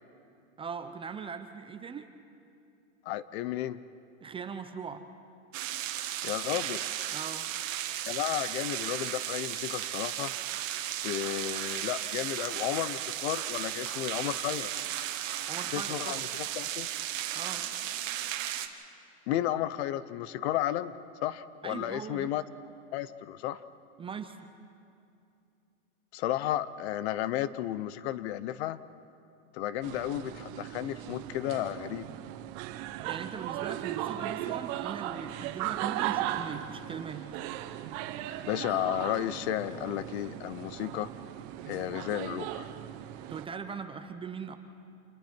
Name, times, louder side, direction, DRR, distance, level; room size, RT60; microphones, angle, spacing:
voice 1, 0.6-2.1 4.2-5.0 7.1-7.5 15.5-16.2 17.3-17.6 21.6-22.3 24.0-24.4 33.1-37.2 43.3-44.6, right 6 dB, 15° right, 8 dB, 0.6 m, -40 dB
voice 2, 3.0-3.8 6.2-6.8 8.1-10.3 11.0-14.7 15.7-16.9 19.3-20.9 21.2-22.4 22.9-23.6 26.1-28.8 29.5-32.1 38.4-41.1 41.7-42.7, left 13 dB, 50° left, 16 dB, 0.8 m, -33 dB
sound 1, 5.5-18.7, right 12 dB, 65° right, 1.5 m, -35 dB
sound 2, 29.8-43.5, right 12 dB, 45° right, 1.0 m, -37 dB
28.0 x 21.5 x 4.5 m, 2.5 s
hypercardioid pair, 130°, 41 cm